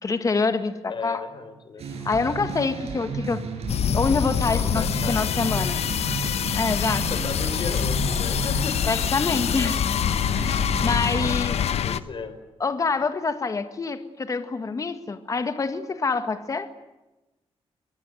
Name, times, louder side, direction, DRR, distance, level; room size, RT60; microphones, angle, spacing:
voice 1, 0.0-1.2 2.0-3.4 3.9-5.8 6.5-7.1 8.8-9.8 10.3-11.6 12.6-16.7, left 4 dB, 35° left, 9 dB, 1.8 m, -26 dB
voice 2, 0.9-1.9 4.5-5.4 7.1-8.8 9.3-9.5 11.6-12.4, left 4 dB, 50° left, 11 dB, 4.4 m, -35 dB
sound 1, 1.8-11.3, right 5 dB, 80° right, 6.6 m, -34 dB
sound 2, 3.7-12.0, left 8 dB, 80° left, 1.1 m, -25 dB
23.5 x 23.5 x 9.5 m, 1.0 s
wide cardioid pair, 145°, 11 cm